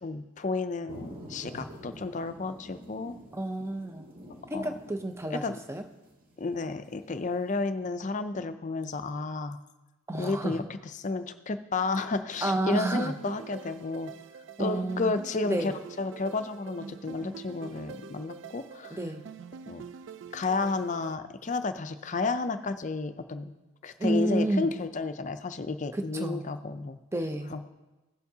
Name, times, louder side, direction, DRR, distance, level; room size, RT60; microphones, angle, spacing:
voice 1, 0.0-3.2 4.5-4.7 5.3-5.6 6.4-9.6 10.2-14.1 14.6-15.7 16.0-19.0 19.7-19.8 20.3-23.5 23.8-27.0 27.5-27.7, left 3 dB, 35° left, 10 dB, 0.4 m, -32 dB
sound 1, 0.9-7.5, equal, 45° right, 1.5 m, -48 dB
voice 2, 3.3-4.1 4.5-5.4 5.7-5.8 10.1-10.6 12.4-13.1 14.6-15.2 15.5-15.7 18.9-19.2 24.0-24.7 25.9-26.4 27.1-27.5, right 1 dB, 15° right, 6 dB, 0.6 m, -30 dB
sound 2, 12.4-21.2, right 6 dB, 60° right, 0.3 m, -45 dB
16.0 x 6.9 x 2.8 m, 1.1 s
head